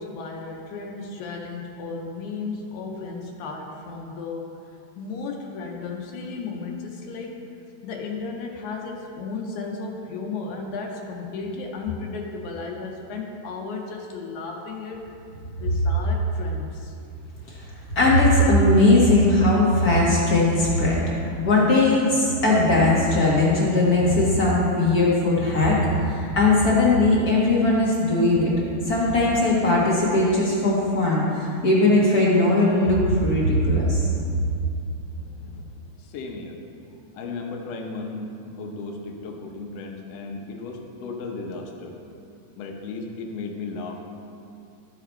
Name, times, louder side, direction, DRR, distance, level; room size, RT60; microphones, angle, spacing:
voice 1, 0.0-4.5 5.0-7.5 7.8-15.1 15.6-16.9, left 4 dB, 90° left, 0 dB, 2.1 m, -34 dB
voice 2, 17.9-21.0 21.3-28.5 28.8-34.1, left 2 dB, 50° left, -5 dB, 1.1 m, -19 dB
voice 3, 35.1-35.6 36.0-36.6 37.1-42.0 42.6-44.0, left 3 dB, 70° left, 1 dB, 1.8 m, -35 dB
12.5 x 4.9 x 4.3 m, 2.5 s
omnidirectional pair, 3.3 m